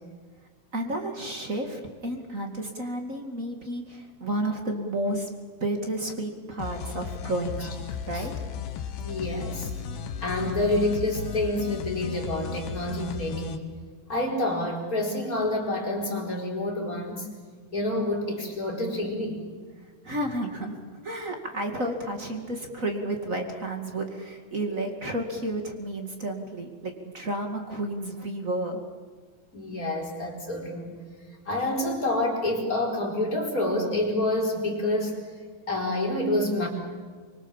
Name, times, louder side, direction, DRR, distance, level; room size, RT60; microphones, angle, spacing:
voice 1, 0.7-5.3 5.6-7.7 8.1-8.3 20.0-28.8, right 1 dB, 35° right, 4 dB, 1.4 m, -31 dB
sound 1, 6.6-13.6, left 7 dB, 75° left, 3.4 m, -35 dB
voice 2, 9.0-9.7 10.2-13.7 14.1-17.3 17.7-19.5 29.5-31.0 31.5-35.1 35.7-36.7, left 1 dB, 20° left, -1 dB, 4.4 m, -28 dB
25.0 x 24.5 x 7.3 m, 1.5 s
omnidirectional pair, 5.1 m